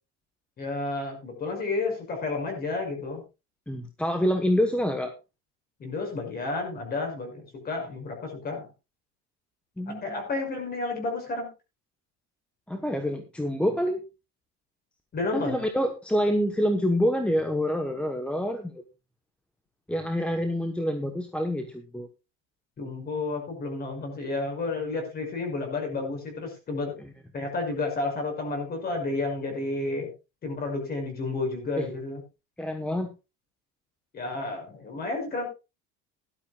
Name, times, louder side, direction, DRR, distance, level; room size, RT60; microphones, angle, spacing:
voice 1, 0.6-3.2 5.8-8.7 9.9-11.5 15.1-15.6 22.8-27.0 27.3-30.1 30.4-32.2 34.1-35.5, left 3 dB, 30° left, 4 dB, 6.0 m, -31 dB
voice 2, 3.7-5.1 9.8-10.2 12.7-14.0 15.3-18.8 19.9-22.1 31.8-31.9 32.6-33.1, equal, 5° left, 6 dB, 1.1 m, -27 dB
16.5 x 12.5 x 2.4 m, 0.27 s
cardioid pair, 155°, 29 cm